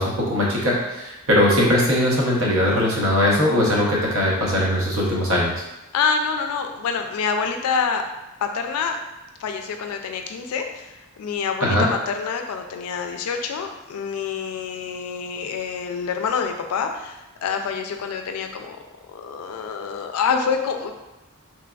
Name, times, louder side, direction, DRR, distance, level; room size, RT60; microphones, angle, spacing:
voice 1, 0.0-5.5 11.6-11.9, left 1 dB, 65° right, -3 dB, 0.7 m, -20 dB
voice 2, 5.9-8.0 8.4-9.0 9.4-10.9 11.2-18.8 19.1-20.9, left 6 dB, 80° left, 5 dB, 0.3 m, -26 dB
3.1 x 2.3 x 2.3 m, 1.0 s
head